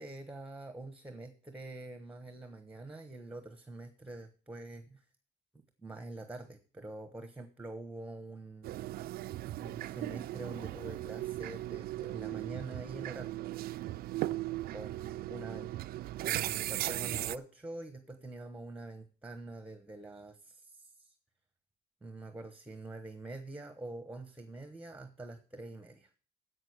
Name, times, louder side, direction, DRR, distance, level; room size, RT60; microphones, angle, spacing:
voice 1, 0.0-5.0 5.8-8.9 9.6-13.4 14.7-15.7 16.2-21.1 22.0-26.1, right 2 dB, 10° right, 7 dB, 1.1 m, -45 dB
sound 1, 8.6-17.4, right 15 dB, 65° right, 0.4 m, -37 dB
7.9 x 6.3 x 7.9 m, 0.38 s
cardioid pair, 110°, 17 cm